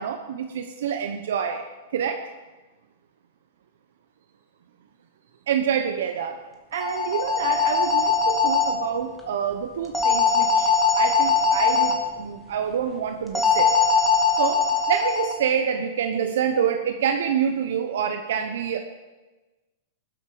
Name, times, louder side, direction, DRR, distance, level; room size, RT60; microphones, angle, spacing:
voice 1, 0.0-1.7 1.9-2.3 5.5-6.4 6.7-13.7 14.3-18.8, right 8 dB, 75° right, 6 dB, 1.0 m, -27 dB
sound 1, 6.7-8.7 9.9-11.9 13.4-15.3, left 5 dB, ahead, 2.2 m, -21 dB
19.5 x 7.9 x 5.1 m, 1.2 s
hypercardioid pair, 130°, 0 cm